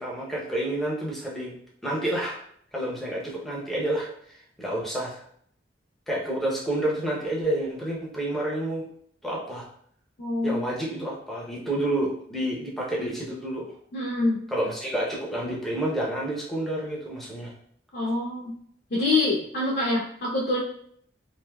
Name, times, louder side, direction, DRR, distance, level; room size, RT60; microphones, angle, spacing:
voice 1, 0.0-1.6 1.8-2.4 2.7-5.2 6.1-8.9 9.2-9.7 10.4-13.7 14.5-17.5, right 1 dB, ahead, -5 dB, 0.7 m, -29 dB
voice 2, 10.2-10.7 13.9-14.4 17.9-18.5 18.9-20.6, left 2 dB, 55° left, -5 dB, 0.6 m, -25 dB
3.3 x 2.7 x 2.2 m, 0.65 s
head